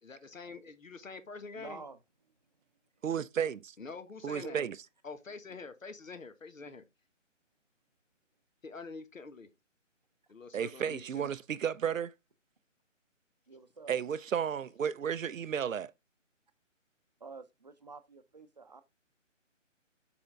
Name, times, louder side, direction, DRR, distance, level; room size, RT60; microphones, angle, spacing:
voice 1, 0.0-1.8 3.8-4.6 5.0-6.8 8.6-9.5 10.3-11.3, left 4 dB, 85° left, 1.5 m, -46 dB
voice 2, 1.5-2.0 4.4-4.7 13.5-13.9 17.2-18.8, right 4 dB, 35° right, 0.6 m, -48 dB
voice 3, 3.0-3.7 4.2-4.7 10.5-12.1 13.9-15.9, right 8 dB, 90° right, 0.6 m, -33 dB
7.0 x 5.1 x 3.6 m
figure-of-eight pair, 165°, 38 cm